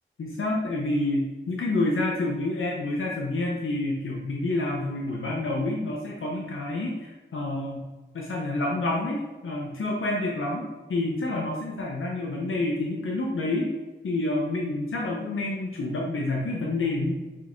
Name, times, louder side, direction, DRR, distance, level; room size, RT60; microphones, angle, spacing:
voice 1, 0.2-7.9 8.1-13.7 14.0-17.1, left 2 dB, 85° left, -2 dB, 0.8 m, -28 dB
4.7 x 3.5 x 3.0 m, 1.2 s
cardioid pair, 40°, 20 cm